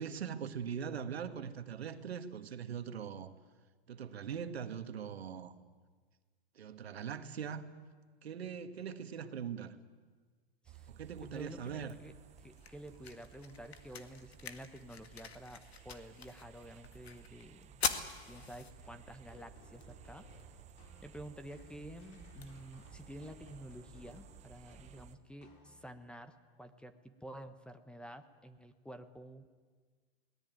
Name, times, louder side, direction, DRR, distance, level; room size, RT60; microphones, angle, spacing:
voice 1, 0.0-3.3 3.9-5.5 6.5-7.7 8.2-9.8 10.9-12.0, right 7 dB, 80° right, 9 dB, 1.7 m, -41 dB
sound 1, 10.6-25.2, right 9 dB, 20° right, 1.0 m, -57 dB
voice 2, 11.2-12.1 12.4-20.3 21.0-29.7, equal, 5° left, 10 dB, 1.2 m, -50 dB
sound 2, 12.0-24.0, left 6 dB, 85° left, 1.9 m, -46 dB
sound 3, 18.3-26.2, left 1 dB, 45° left, 5.5 m, -60 dB
22.5 x 18.5 x 9.3 m, 1.5 s
hypercardioid pair, 120°, 31 cm